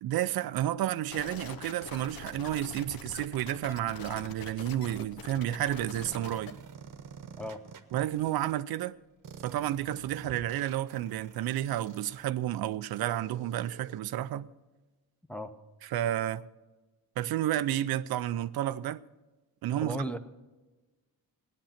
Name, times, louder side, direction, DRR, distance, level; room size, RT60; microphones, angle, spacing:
voice 1, 0.0-6.6 7.9-8.9 9.4-14.5 15.8-16.4 17.2-19.0 19.6-20.0, right 12 dB, 80° right, 0.5 m, -31 dB
sound 1, 1.1-6.5, left 6 dB, 75° left, 1.1 m, -44 dB
sound 2, 6.0-8.5 9.2-14.0, right 6 dB, 60° right, 1.0 m, -49 dB
voice 2, 19.8-20.2, equal, 5° left, 0.7 m, -35 dB
16.0 x 10.0 x 5.8 m
cardioid pair, 125°, 36 cm